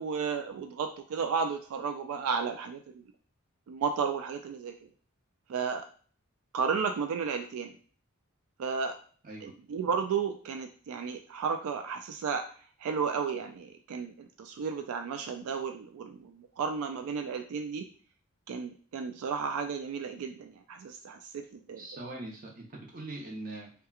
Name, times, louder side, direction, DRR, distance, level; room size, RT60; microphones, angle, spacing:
voice 1, 0.0-3.0 3.7-4.7 5.5-5.8 6.5-7.7 8.6-8.9 9.4-12.4 12.8-17.8 18.5-22.1, right 5 dB, 90° right, 5 dB, 0.3 m, -33 dB
voice 2, 21.8-23.7, right 2 dB, 40° right, -1 dB, 0.6 m, -42 dB
2.9 x 2.2 x 2.3 m, 0.43 s
head